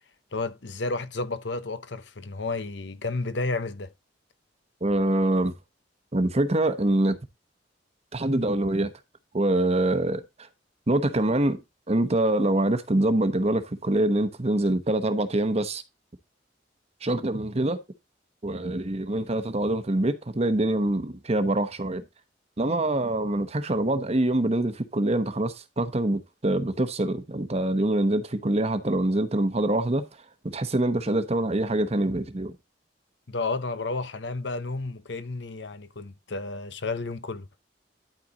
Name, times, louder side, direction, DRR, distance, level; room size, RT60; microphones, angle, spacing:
voice 1, 0.3-3.9 33.3-37.5, left 3 dB, 70° left, 0.9 m, -31 dB
voice 2, 4.8-5.5 6.1-7.2 8.1-8.9 9.3-10.2 10.9-11.6 11.9-15.8 17.0-17.8 18.4-22.0 22.6-30.1 30.4-32.5, right 1 dB, 35° right, 1.0 m, -25 dB
12.0 x 4.4 x 4.0 m
head